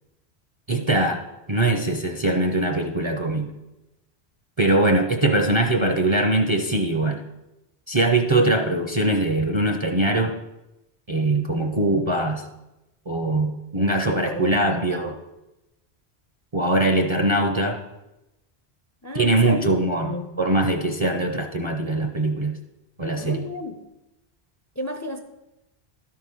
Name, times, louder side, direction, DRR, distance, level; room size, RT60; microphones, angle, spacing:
voice 1, 0.7-1.2 1.5-3.5 4.6-7.2 7.9-10.3 11.1-12.4 13.1-15.1 16.5-17.8 19.1-22.6 23.0-23.4, right 2 dB, 35° right, 3 dB, 0.6 m, -22 dB
voice 2, 14.1-15.0 19.0-20.4 23.2-23.8 24.8-25.2, left 1 dB, 25° left, 6 dB, 0.4 m, -33 dB
12.0 x 4.8 x 5.5 m, 0.96 s
omnidirectional pair, 1.1 m